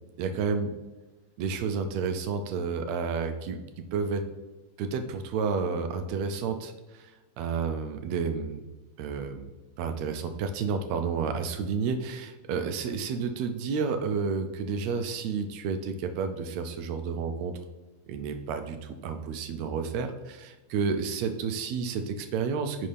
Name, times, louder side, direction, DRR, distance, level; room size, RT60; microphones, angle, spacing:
voice 1, 0.2-0.7 1.4-3.6 3.9-4.2 4.8-7.1 7.4-8.6 9.0-9.5 9.8-17.6 18.1-22.9, right 5 dB, 80° right, 7 dB, 1.7 m, -31 dB
9.4 x 4.4 x 3.3 m, 1.1 s
omnidirectional pair, 3.3 m